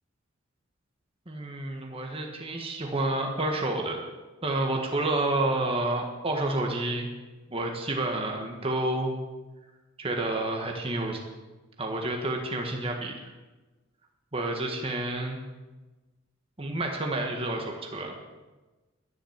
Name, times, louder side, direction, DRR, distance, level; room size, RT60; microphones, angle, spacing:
voice 1, 1.3-4.0 4.4-7.1 7.5-9.2 10.0-11.2 11.8-13.1 14.3-15.4 16.6-18.1, right 2 dB, 30° right, 1 dB, 1.5 m, -29 dB
11.0 x 10.5 x 7.3 m, 1.2 s
head